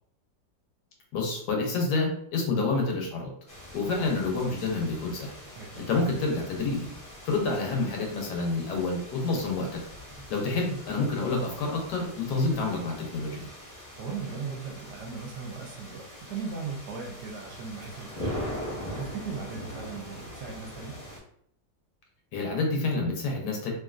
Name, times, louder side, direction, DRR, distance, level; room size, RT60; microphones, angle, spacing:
voice 1, 1.1-3.3 3.7-5.3 5.8-6.9 7.2-9.8 10.3-13.5 22.3-23.7, left 3 dB, 70° left, 1 dB, 1.2 m, -28 dB
sound 1, 3.5-21.2, left 1 dB, 30° left, 0.7 m, -42 dB
voice 2, 5.6-6.0 14.0-21.0, right 5 dB, 70° right, 0 dB, 1.1 m, -38 dB
3.1 x 2.6 x 2.4 m, 0.66 s
omnidirectional pair, 2.0 m